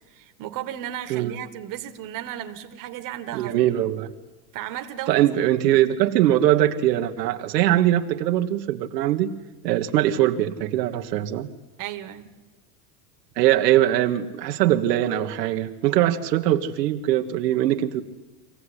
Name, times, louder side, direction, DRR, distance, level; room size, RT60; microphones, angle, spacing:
voice 1, 0.1-3.5 4.5-5.4 11.8-12.3, right 12 dB, 40° right, 7 dB, 1.8 m, -34 dB
voice 2, 3.3-4.1 5.1-9.3 9.6-11.5 13.4-18.0, right 13 dB, 75° right, 5 dB, 1.4 m, -21 dB
25.0 x 16.5 x 9.8 m, 1.2 s
supercardioid pair, 135°, 49 cm